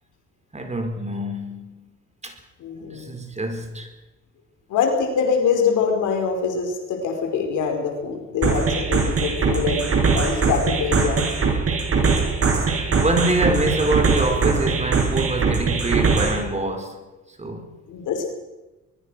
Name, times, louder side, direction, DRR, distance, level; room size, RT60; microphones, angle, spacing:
voice 1, 0.5-1.9 2.2-2.4 2.9-3.9 12.7-17.0 17.4-17.7, right 2 dB, 20° right, 4.8 m, -25 dB
voice 2, 2.6-3.1 4.7-9.9 10.1-11.2 17.9-18.3, left 6 dB, 85° left, 4.9 m, -24 dB
sound 1, 8.4-16.4, right 5 dB, 50° right, 6.3 m, -21 dB
24.0 x 21.0 x 6.4 m
cardioid pair, 90°, 30 cm